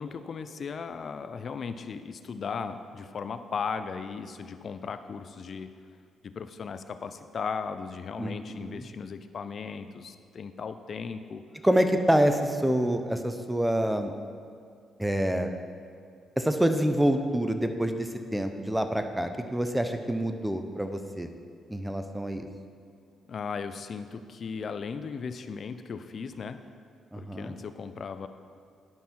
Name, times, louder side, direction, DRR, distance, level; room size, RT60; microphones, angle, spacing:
voice 1, 0.0-5.7 6.2-11.4 23.3-26.6 27.1-28.3, left 5 dB, 55° left, 10 dB, 0.5 m, -37 dB
voice 2, 8.2-8.9 11.6-14.1 15.0-15.5 16.4-21.3 21.7-22.5 27.1-27.6, right 1 dB, 5° right, 7 dB, 0.8 m, -27 dB
11.0 x 5.4 x 4.4 m, 2.3 s
supercardioid pair, 65°, 0 cm